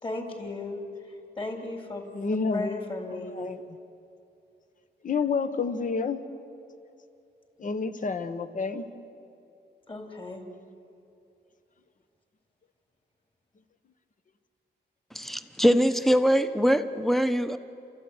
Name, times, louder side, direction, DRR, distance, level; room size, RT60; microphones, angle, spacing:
voice 1, 0.0-2.1 2.5-3.4 9.9-10.5, left 2 dB, 30° left, 2 dB, 3.7 m, -36 dB
voice 2, 2.1-2.8 3.1-3.6 5.0-6.2 7.6-8.8, left 4 dB, 45° left, 10 dB, 1.3 m, -29 dB
voice 3, 15.1-17.6, equal, ahead, 10 dB, 1.0 m, -23 dB
30.0 x 14.0 x 9.8 m, 2.7 s
wide cardioid pair, 125°, 18 cm